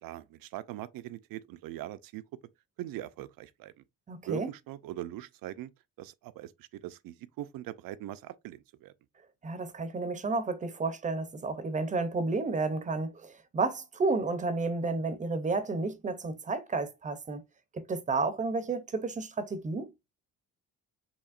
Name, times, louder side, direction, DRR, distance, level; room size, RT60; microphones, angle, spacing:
voice 1, 0.0-2.2 2.8-3.7 4.3-5.7 6.0-8.9, right 14 dB, 90° right, 0.5 m, -41 dB
voice 2, 4.1-4.5 9.4-17.4 17.7-19.9, right 3 dB, 25° right, 0.5 m, -31 dB
7.0 x 2.9 x 2.4 m
cardioid pair, 175°, 33 cm